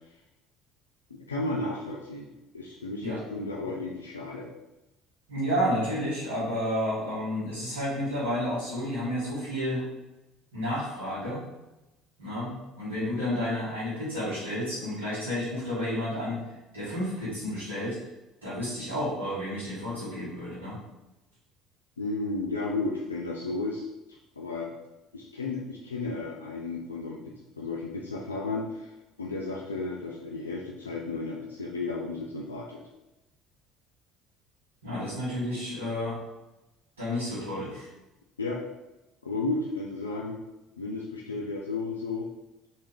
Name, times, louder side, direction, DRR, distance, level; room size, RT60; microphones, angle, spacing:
voice 1, 1.1-4.5 22.0-24.7 25.1-28.9 29.2-32.8 38.4-38.6 39.2-40.4 40.8-42.3, left 3 dB, 90° left, -3 dB, 0.3 m, -33 dB
voice 2, 5.3-9.8 10.5-11.4 12.2-18.0 18.4-20.8 34.8-36.2 37.0-37.9, equal, 90° right, -14 dB, 1.4 m, -31 dB
3.4 x 2.8 x 3.2 m, 1.0 s
hypercardioid pair, 60°, 0 cm